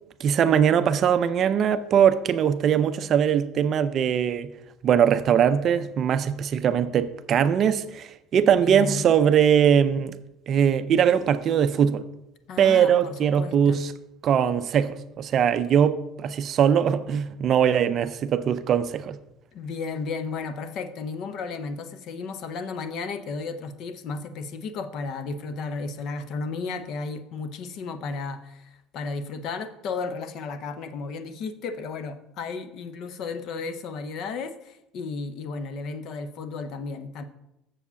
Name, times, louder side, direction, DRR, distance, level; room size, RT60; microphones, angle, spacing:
voice 1, 0.2-4.5 4.8-10.1 10.5-12.0 12.6-13.9 14.2-19.2, right 8 dB, 40° right, 0.4 m, -21 dB
voice 2, 8.5-9.2 12.5-13.8 19.5-37.2, left 4 dB, 55° left, 0.7 m, -34 dB
7.1 x 4.9 x 6.8 m
cardioid pair, 140°, 0 cm